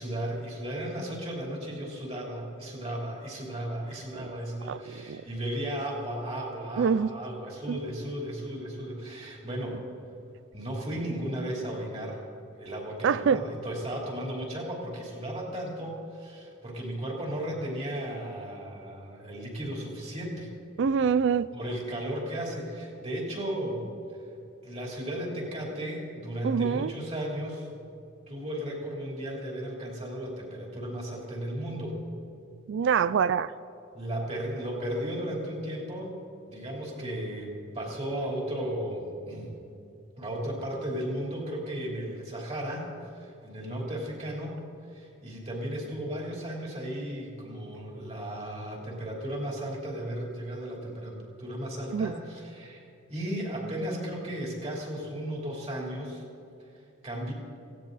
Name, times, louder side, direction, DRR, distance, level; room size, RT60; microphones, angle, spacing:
voice 1, 0.0-9.8 10.5-12.2 12.5-20.5 21.5-23.9 24.6-27.7 28.3-32.0 33.9-36.2 36.5-39.5 40.2-44.6 44.9-56.2 57.0-57.3, right 1 dB, 30° right, -1 dB, 3.4 m, -35 dB
voice 2, 6.8-7.1 7.7-7.8 13.0-13.4 20.8-21.5 26.4-26.9 32.7-33.5 51.9-52.1, right 6 dB, 60° right, 17 dB, 0.3 m, -25 dB
18.0 x 16.0 x 4.1 m, 2.7 s
head